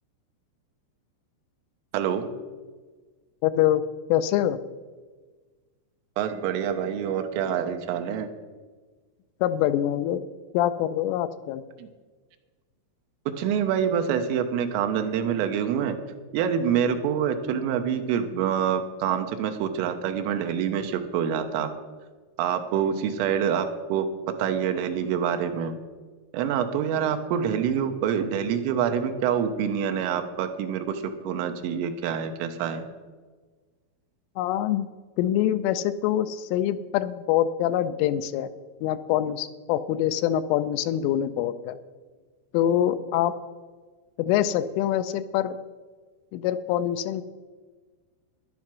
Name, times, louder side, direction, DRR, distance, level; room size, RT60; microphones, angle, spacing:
voice 1, 1.9-2.3 6.2-8.3 11.8-11.9 13.4-16.0 16.3-21.7 22.4-24.1 24.4-25.7 26.3-32.9, right 8 dB, 80° right, 7 dB, 3.4 m, -26 dB
voice 2, 3.4-3.8 4.1-4.6 9.4-10.2 10.5-11.6 34.4-34.9 35.2-38.5 38.8-41.8 42.5-43.3 44.2-45.6 46.3-47.2, left 11 dB, 85° left, 12 dB, 3.0 m, -24 dB
12.0 x 10.5 x 6.0 m, 1.4 s
omnidirectional pair, 5.9 m